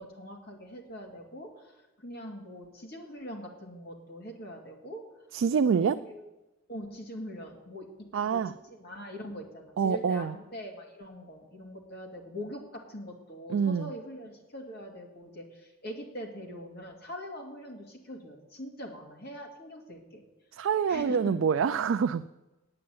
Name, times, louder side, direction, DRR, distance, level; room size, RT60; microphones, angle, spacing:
voice 1, 0.0-5.0 5.9-6.3 6.7-20.2 20.9-21.4, equal, 50° left, 1 dB, 2.2 m, -43 dB
voice 2, 5.3-6.0 8.1-8.5 9.8-10.3 13.5-13.9 20.5-22.3, right 6 dB, 70° right, 10 dB, 0.3 m, -26 dB
8.8 x 8.6 x 8.7 m, 1.1 s
head